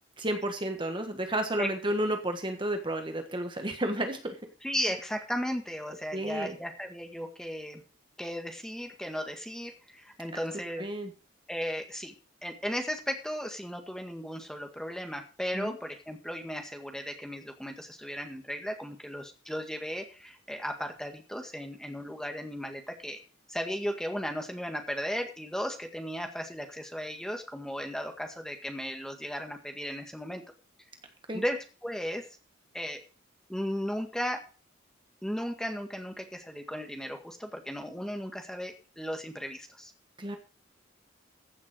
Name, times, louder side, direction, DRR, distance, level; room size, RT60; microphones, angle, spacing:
voice 1, 0.2-4.4 6.1-6.5 10.8-11.1 15.5-15.7 31.3-31.4 40.2-40.4, right 1 dB, 25° right, 5 dB, 1.5 m, -31 dB
voice 2, 4.6-7.8 8.2-10.9 11.5-12.2 12.4-23.2 23.5-30.4 31.3-32.3 32.7-33.0 33.5-34.5 35.2-39.9, equal, 5° left, 4 dB, 1.8 m, -35 dB
15.0 x 7.2 x 5.0 m, 0.36 s
head